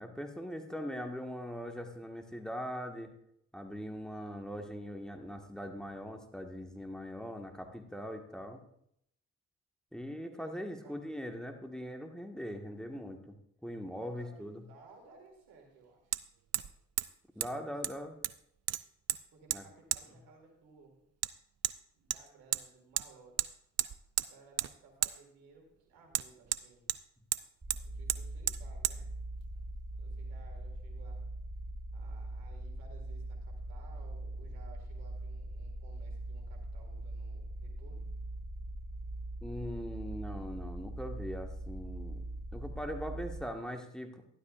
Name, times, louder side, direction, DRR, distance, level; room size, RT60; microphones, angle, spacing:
voice 1, 0.0-3.1 3.5-8.6 9.9-13.4 13.6-14.6 17.3-18.1 19.5-19.6 39.4-42.2 42.5-44.2, equal, ahead, 3 dB, 1.6 m, -41 dB
voice 2, 13.9-16.2 17.3-18.1 19.3-21.1 21.9-23.5 24.3-26.9 27.8-29.1 29.9-31.3 31.9-38.1, right 4 dB, 85° right, 2 dB, 2.0 m, -59 dB
Hammer, 14.2-14.3 16.1-16.2 16.5-16.7 17.0-17.1 17.4-17.5 17.8-18.4 18.7-19.2 19.5-19.6 19.9-20.0 21.2-21.3 21.6-21.8 22.1-22.6 23.0-23.1 23.4-23.5 23.8-24.3 24.6-24.7 25.0-25.1 26.1-27.0 27.3-27.4 27.7-27.8 28.1-28.2 28.5-28.6 28.8-29.0, right 11 dB, 45° right, 0.5 m, -32 dB
sound 1, 27.6-43.5, right 1 dB, 25° right, 1.5 m, -41 dB
13.0 x 11.5 x 2.5 m, 0.72 s
hypercardioid pair, 40°, 35 cm